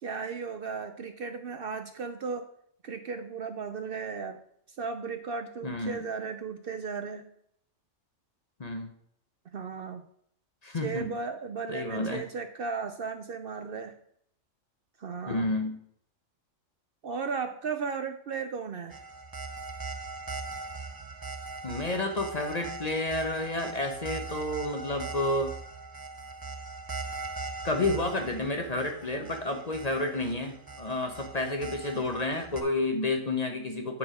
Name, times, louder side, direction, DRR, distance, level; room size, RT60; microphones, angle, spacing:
voice 1, 0.0-2.5 2.8-4.4 4.8-7.3 9.5-10.1 10.8-14.0 15.0-15.5 17.0-19.0, right 5 dB, 55° right, 7 dB, 0.7 m, -35 dB
voice 2, 5.6-6.1 8.6-8.9 10.6-11.1 11.7-12.2 15.3-15.8 21.6-25.5 27.6-34.0, left 2 dB, 35° left, 4 dB, 0.9 m, -30 dB
sound 1, 18.9-32.6, right 3 dB, 25° right, 0.5 m, -40 dB
8.6 x 4.7 x 5.0 m, 0.67 s
omnidirectional pair, 1.3 m